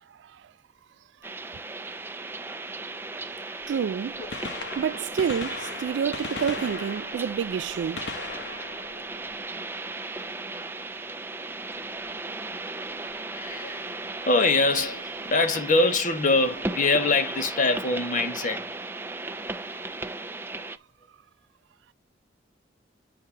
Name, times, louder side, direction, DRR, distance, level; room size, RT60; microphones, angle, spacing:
sound 1, 1.2-20.8, right 2 dB, 10° right, 0.5 m, -36 dB
Gunshot gunfire, 3.6-3.7 4.2-10.0 12.0-12.1 13.1-13.2 14.8-14.9 16.3-16.4 16.6-16.7, left 3 dB, 70° left, 1.1 m, -38 dB
voice 1, 3.7-4.2 4.8-8.1, right 7 dB, 75° right, 0.3 m, -28 dB
voice 2, 12.5-12.8 13.3-13.9 14.3-18.7 20.6-20.7, left 3 dB, 45° left, 1.2 m, -24 dB
8.7 x 3.2 x 4.5 m
head